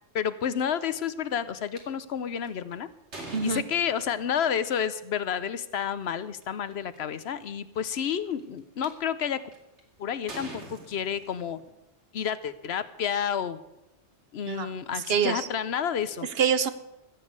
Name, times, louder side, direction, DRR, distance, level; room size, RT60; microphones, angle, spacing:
voice 1, 0.1-2.9 3.2-9.4 10.0-11.6 12.1-13.6 14.3-16.3, left 8 dB, 70° left, 14 dB, 1.0 m, -30 dB
sound 1, 1.7-1.8 2.4-4.3 5.6-5.8 6.4-6.5 6.7-7.2 7.9-8.9 9.5-9.8 10.3-11.7, right 2 dB, 80° right, 2.7 m, -43 dB
voice 2, 3.3-3.6 14.5-15.5 16.2-16.7, right 7 dB, 60° right, 12 dB, 1.1 m, -26 dB
15.5 x 7.4 x 8.1 m, 0.90 s
omnidirectional pair, 1.2 m